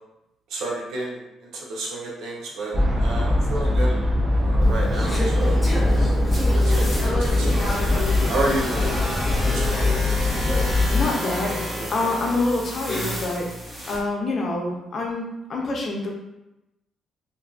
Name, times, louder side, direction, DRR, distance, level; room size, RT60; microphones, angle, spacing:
voice 1, 0.5-1.2 1.5-4.0 4.4-5.6 5.9-6.1 6.5-6.9 7.2-7.7 8.3-8.9 9.2-9.9, right 2 dB, 85° right, -3 dB, 0.7 m, -30 dB
sound 1, 2.7-11.1, left 1 dB, 30° right, 0.6 m, -21 dB
Conversation / Chatter, 4.6-13.5, left 1 dB, 10° left, 1.0 m, -31 dB
sound 2, 6.3-14.0, equal, 15° right, 1.0 m, -32 dB
voice 2, 10.9-11.5 11.9-13.4 13.9-16.1, left 2 dB, 50° left, -1 dB, 0.6 m, -26 dB
2.5 x 2.3 x 2.4 m, 0.93 s
cardioid pair, 90°, 0 cm